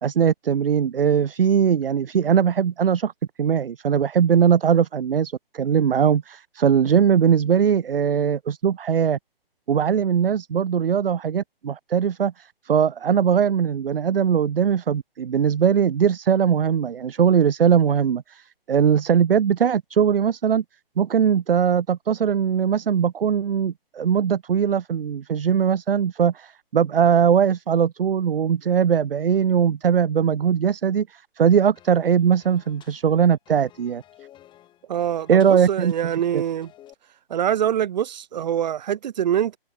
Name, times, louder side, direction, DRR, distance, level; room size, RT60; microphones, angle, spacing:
voice 1, 0.0-3.1 3.4-9.2 9.7-20.6 21.0-34.0 35.3-35.9 36.3-36.4, right 7 dB, 70° right, 0.8 m, -20 dB
sound 1, 31.8-36.9, left 12 dB, 15° left, 7.2 m, -53 dB
voice 2, 34.9-36.7 37.3-39.6, right 10 dB, 45° right, 2.8 m, -24 dB
figure-of-eight pair, 145°, 30 cm